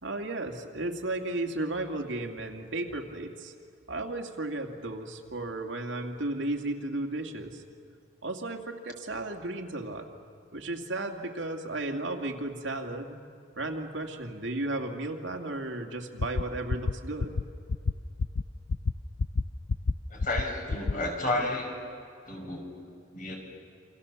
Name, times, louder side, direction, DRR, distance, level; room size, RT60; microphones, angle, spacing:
voice 1, 0.0-3.5 3.9-7.6 8.2-10.1 10.5-13.2 13.6-17.3, right 2 dB, 75° right, 3 dB, 2.4 m, -34 dB
sound 1, 16.2-16.4 16.7-16.9 17.2-17.4 17.7-17.9 18.2-18.4 18.7-18.9 19.2-19.4 19.7-19.9 20.2-20.4 20.7-20.9, left 3 dB, 75° left, 0.6 m, -27 dB
voice 2, 20.1-21.7 22.3-22.7 23.1-23.4, left 2 dB, 45° left, 1 dB, 5.6 m, -31 dB
28.5 x 26.0 x 7.3 m, 2.5 s
head